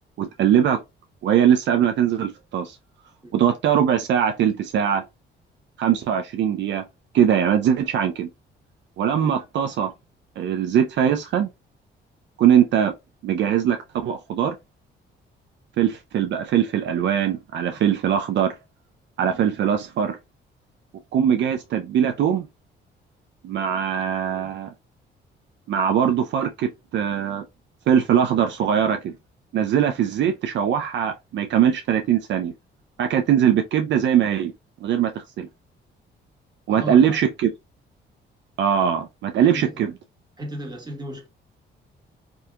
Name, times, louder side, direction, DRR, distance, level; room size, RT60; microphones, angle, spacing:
voice 1, 0.2-0.8 1.2-2.8 3.3-5.0 5.8-6.8 7.1-8.3 9.0-9.9 10.4-11.5 12.4-12.9 13.2-14.6 15.8-18.5 19.2-20.2 21.1-22.5 23.4-24.7 25.7-27.4 27.9-29.2 29.5-32.5 33.0-34.5 34.8-35.5 36.7-37.5 38.6-39.9, right 9 dB, 65° right, 0.5 m, -21 dB
voice 2, 36.7-37.2 39.4-39.8 40.4-41.3, right 1 dB, 20° right, 1.5 m, -35 dB
3.6 x 2.7 x 2.2 m
cardioid pair, 90°, 20 cm